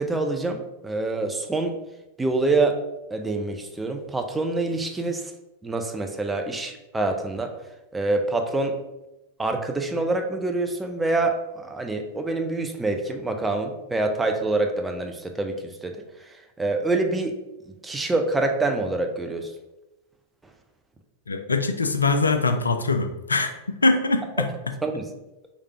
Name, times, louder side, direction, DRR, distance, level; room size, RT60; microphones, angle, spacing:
voice 1, 0.0-1.7 2.2-2.8 3.1-5.3 5.6-7.5 7.9-8.8 9.4-17.4 17.6-19.5 24.8-25.1, right 2 dB, 10° right, 4 dB, 0.5 m, -26 dB
voice 2, 21.3-24.5, left 3 dB, 75° left, 7 dB, 0.3 m, -23 dB
3.3 x 3.2 x 3.5 m, 0.98 s
figure-of-eight pair, 90°, 0 cm